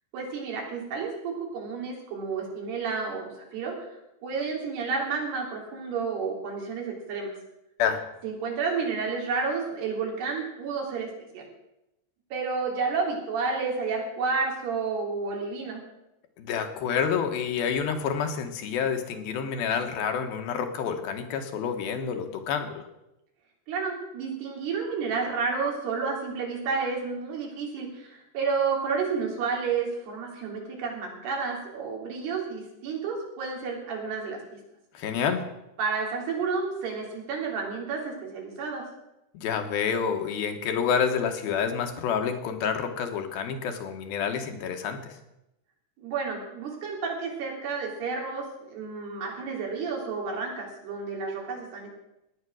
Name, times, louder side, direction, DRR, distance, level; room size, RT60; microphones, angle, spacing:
voice 1, 0.1-3.7 4.2-7.3 8.2-11.1 11.3-11.4 12.3-15.8 23.7-34.6 35.8-38.8 46.0-51.9, right 5 dB, 85° right, -1 dB, 5.3 m, -31 dB
voice 2, 16.4-22.9 34.9-35.5 39.3-45.2, left 7 dB, 70° left, 6 dB, 3.1 m, -28 dB
17.0 x 10.5 x 6.3 m, 0.89 s
omnidirectional pair, 4.6 m